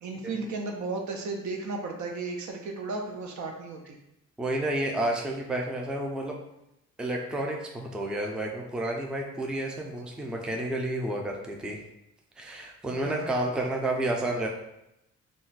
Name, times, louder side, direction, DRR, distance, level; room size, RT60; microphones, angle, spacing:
voice 1, 0.0-4.0 12.9-13.5, right 3 dB, 75° right, 2 dB, 0.6 m, -35 dB
voice 2, 4.4-6.4 7.0-11.8 12.4-14.5, right 1 dB, 5° right, 0 dB, 0.3 m, -30 dB
2.4 x 2.1 x 3.9 m, 0.86 s
cardioid pair, 110°, 29 cm